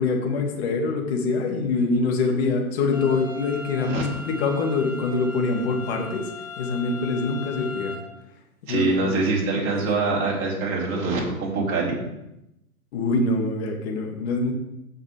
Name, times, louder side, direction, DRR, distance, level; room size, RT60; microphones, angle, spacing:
voice 1, 0.0-6.3 6.6-7.9 8.7-9.1 9.7-9.8 12.9-14.5, left 3 dB, 45° left, 2 dB, 2.4 m, -24 dB
sound 1, 2.9-8.0, left 3 dB, 65° left, 3.2 m, -38 dB
voice 2, 8.7-12.0, right 3 dB, 30° right, -3 dB, 3.7 m, -24 dB
16.0 x 6.3 x 3.5 m, 0.88 s
figure-of-eight pair, 115°, 44 cm